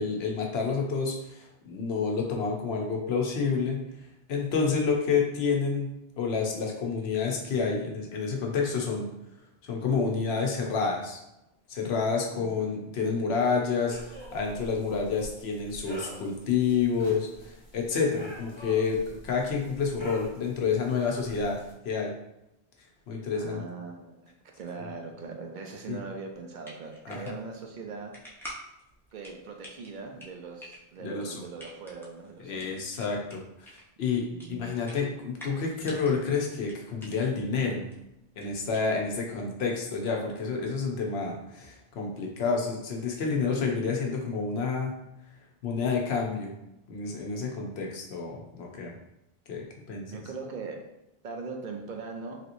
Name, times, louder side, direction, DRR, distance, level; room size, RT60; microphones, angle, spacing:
voice 1, 0.0-3.8 4.3-9.1 9.6-11.2 11.7-17.3 17.7-21.6 21.8-22.1 23.1-23.6 24.8-24.9 25.9-26.0 27.1-27.4 31.0-31.4 32.4-34.2 34.5-37.9 38.4-44.9 45.6-46.5 46.9-48.9 49.5-50.2, left 5 dB, 85° left, 0 dB, 0.9 m, -29 dB
sound 1, 13.9-21.7, right 1 dB, 30° left, 1.0 m, -46 dB
voice 2, 23.3-28.1 29.1-33.0 34.3-34.7 50.1-50.8 51.2-52.4, right 4 dB, 55° right, 2 dB, 0.6 m, -41 dB
sound 2, 26.3-39.3, equal, 5° left, 0.4 m, -49 dB
3.4 x 2.8 x 2.5 m, 0.89 s
omnidirectional pair, 1.0 m